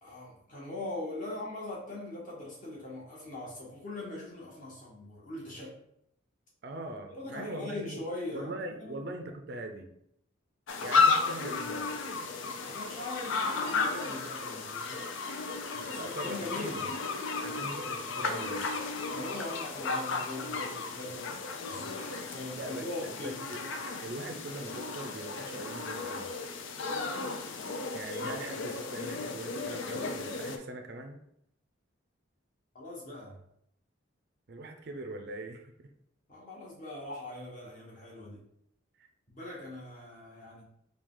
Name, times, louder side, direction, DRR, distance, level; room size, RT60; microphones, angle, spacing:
voice 1, 0.0-5.8 7.1-9.1 12.7-15.6 15.9-16.9 19.1-21.4 21.7-23.4 32.7-33.4 36.3-38.4 39.3-40.6, left 2 dB, 40° left, -4 dB, 1.2 m, -41 dB
voice 2, 6.6-8.0 8.3-9.9 10.8-11.9 15.7-16.9 17.4-18.7 22.5-23.6 24.0-26.3 27.9-31.2 34.5-35.9 39.0-39.1, right 2 dB, 50° right, 5 dB, 0.4 m, -41 dB
sound 1, 10.7-30.6, left 4 dB, 70° left, 0.5 m, -33 dB
4.6 x 2.3 x 3.7 m, 0.73 s
head